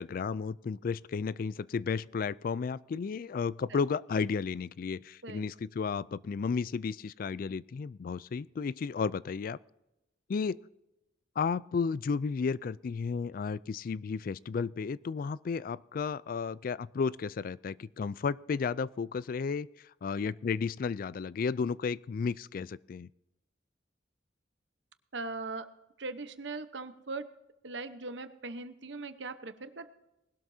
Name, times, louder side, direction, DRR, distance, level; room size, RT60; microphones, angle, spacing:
voice 1, 0.0-9.6 10.3-10.6 11.4-23.1, left 5 dB, 50° left, 20 dB, 0.3 m, -33 dB
voice 2, 25.1-25.7 26.0-27.2 27.6-29.9, right 3 dB, 75° right, 11 dB, 1.0 m, -40 dB
20.5 x 12.5 x 2.7 m, 0.95 s
head